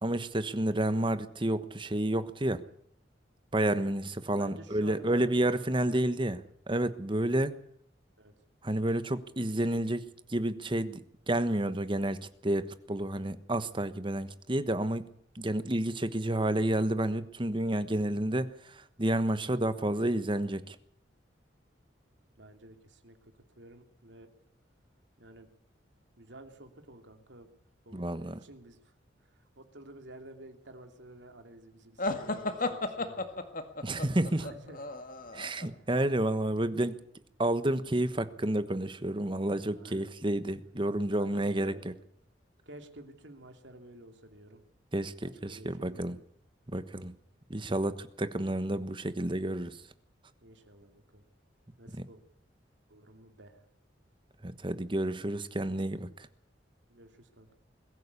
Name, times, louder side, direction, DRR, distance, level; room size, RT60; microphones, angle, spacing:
voice 1, 0.0-2.6 3.5-6.4 6.7-7.5 8.6-15.1 15.3-20.8 27.9-28.4 33.8-34.4 35.3-37.0 37.4-41.9 44.9-46.1 46.7-47.1 47.5-49.8 51.9-52.0 54.4-56.3, right 1 dB, 25° right, 12 dB, 1.2 m, -30 dB
voice 2, 4.3-5.4 5.9-6.5 8.2-8.3 22.4-24.3 25.2-25.5 26.2-27.5 27.8-28.9 29.2-33.3 34.2-34.9 35.4-35.9 39.5-40.1 41.1-42.1 42.7-44.6 45.2-46.2 50.4-51.2 51.8-52.2 52.9-53.6 56.9-57.5, right 1 dB, 80° right, 6 dB, 2.7 m, -52 dB
sound 1, 32.0-35.7, left 2 dB, 50° left, 2.0 m, -34 dB
22.0 x 14.5 x 8.4 m, 0.67 s
head